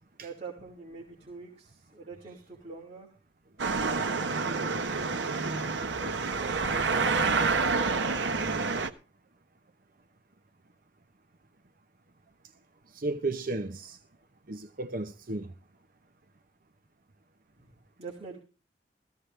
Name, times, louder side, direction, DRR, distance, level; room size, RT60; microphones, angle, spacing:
voice 1, 0.2-3.1 3.7-8.3 17.6-17.7 18.0-18.4, right 3 dB, 35° right, 2.6 m, -45 dB
sound 1, 3.6-8.9, right 4 dB, 75° right, 1.1 m, -28 dB
voice 2, 12.9-14.0 14.5-15.5, right 2 dB, 50° right, 0.8 m, -34 dB
15.0 x 15.0 x 3.3 m
head